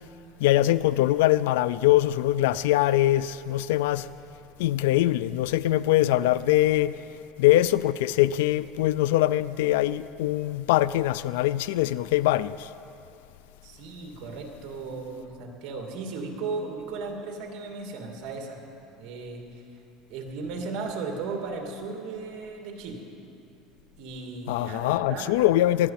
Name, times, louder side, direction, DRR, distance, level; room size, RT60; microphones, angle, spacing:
voice 1, 0.4-4.1 4.6-7.0 7.4-12.7 24.5-25.9, left 15 dB, 90° left, 0.3 m, -23 dB
voice 2, 6.0-6.4 13.6-18.6 19.0-19.6 20.1-23.0 24.0-25.4, right 4 dB, 60° right, 2.7 m, -36 dB
19.5 x 12.5 x 5.9 m
supercardioid pair, 135°, 0 cm